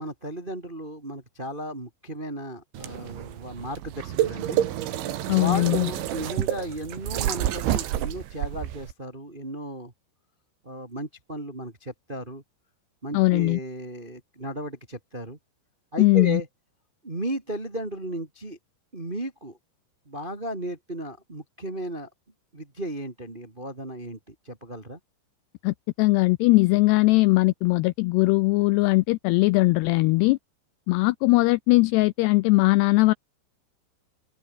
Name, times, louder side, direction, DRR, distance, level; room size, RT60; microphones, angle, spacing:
voice 1, 0.0-4.6 5.3-9.9 10.6-12.4 13.0-15.4 15.9-16.5 17.0-18.6 18.9-19.6 20.0-22.1 22.5-25.0, right 1 dB, 25° right, 1.1 m, -35 dB
sound 1, 2.7-8.9, right 12 dB, 85° right, 4.3 m, -29 dB
voice 2, 5.3-5.9 13.1-13.6 16.0-16.4 25.6-30.4 30.9-33.1, left 22 dB, 85° left, 2.4 m, -20 dB
open air
omnidirectional pair, 5.3 m